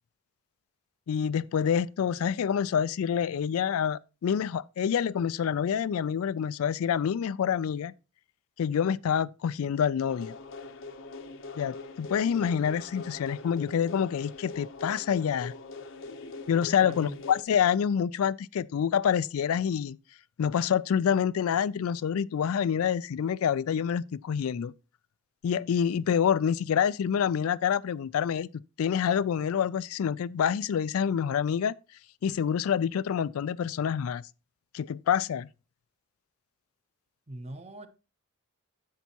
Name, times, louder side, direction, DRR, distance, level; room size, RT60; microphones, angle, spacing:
voice 1, 1.1-7.9 8.6-10.4 11.6-15.5 16.5-20.0 20.4-24.7 25.4-28.5 28.8-31.7 32.2-34.2 34.7-35.5, left 8 dB, 75° left, 0.3 m, -27 dB
sound 1, 10.1-17.4, left 3 dB, 55° left, 0.7 m, -43 dB
voice 2, 16.8-17.2 37.3-37.9, right 1 dB, 30° right, 0.8 m, -41 dB
10.5 x 8.1 x 2.9 m
head